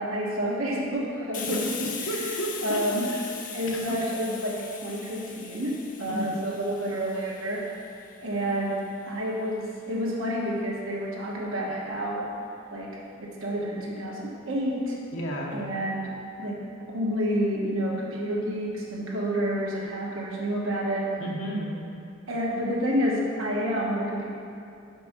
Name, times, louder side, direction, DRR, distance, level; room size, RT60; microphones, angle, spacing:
voice 1, 0.0-1.7 2.1-2.3 2.6-3.1 3.5-7.7 8.2-12.3 12.7-15.0 15.5-16.1 16.4-21.1 22.3-24.3, equal, 80° right, -3 dB, 1.4 m, -29 dB
Hiss, 1.3-8.7, left 6 dB, 40° left, 0.6 m, -39 dB
voice 2, 1.5-2.8 3.1-3.2 3.9-4.0 6.1-6.4 15.1-15.6 21.2-21.7, right 1 dB, 75° left, -2 dB, 1.2 m, -32 dB
5.3 x 5.2 x 6.0 m, 2.6 s
head